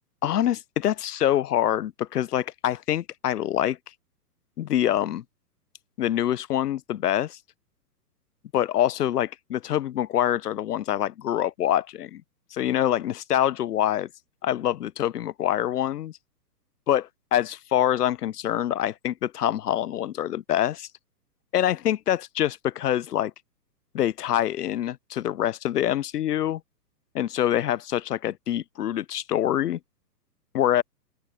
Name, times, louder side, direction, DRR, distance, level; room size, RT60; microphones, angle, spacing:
voice 1, 0.2-3.8 4.6-5.2 6.0-7.4 8.5-12.2 12.5-14.1 14.4-16.1 16.9-17.0 17.3-20.9 21.5-23.3 23.9-26.6 27.1-29.8 30.5-30.8, left 11 dB, 70° left, 0.8 m, -25 dB
open air
hypercardioid pair, 125°, 49 cm